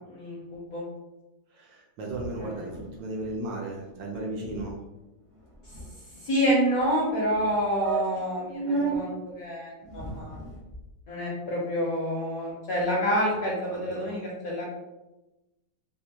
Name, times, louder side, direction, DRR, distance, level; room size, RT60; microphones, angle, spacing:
voice 1, 0.1-0.8 2.4-2.7 6.2-10.4 11.1-14.7, equal, 65° left, -5 dB, 0.9 m, -28 dB
voice 2, 1.5-4.8 13.7-14.0, right 2 dB, 75° right, -1 dB, 1.2 m, -35 dB
sound 1, 2.1-2.9 3.2-3.4 3.6-3.9 4.1-4.2 4.4-4.7 5.3-6.4 7.0-7.1 7.5-7.6 7.8-9.0 9.8-10.8, right 3 dB, 50° right, 0.3 m, -34 dB
3.4 x 2.5 x 2.8 m, 1.0 s
omnidirectional pair, 2.2 m